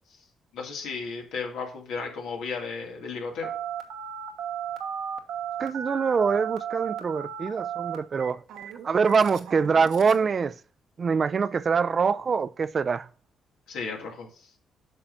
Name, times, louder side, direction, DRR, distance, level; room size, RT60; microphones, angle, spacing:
voice 1, 0.5-3.5 13.7-14.5, left 4 dB, 85° left, 2.2 m, -34 dB
Telephone, 3.4-10.3, right 9 dB, 85° right, 1.1 m, -35 dB
voice 2, 5.6-8.4 8.8-10.6 11.0-13.1, right 5 dB, 40° right, 0.4 m, -24 dB
8.7 x 5.9 x 2.6 m
cardioid pair, 90°, 0 cm